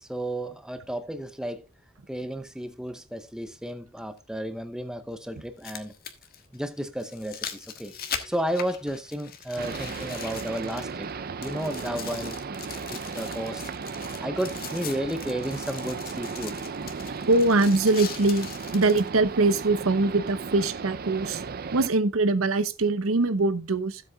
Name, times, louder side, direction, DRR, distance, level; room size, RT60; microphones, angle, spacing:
voice 1, 0.0-1.7 2.1-5.9 6.5-11.1 11.4-12.4 12.9-13.6 13.9-16.6, right 1 dB, 5° right, 0.7 m, -33 dB
sound 1, 2.1-2.2 4.2-4.3 5.4-11.1 11.4-19.1 19.7-19.8, left 8 dB, 45° left, 1.4 m, -40 dB
sound 2, 9.6-21.9, right 5 dB, 45° right, 0.5 m, -36 dB
voice 2, 17.3-21.4 21.7-24.0, right 2 dB, 85° right, 0.8 m, -23 dB
15.5 x 7.7 x 2.3 m
head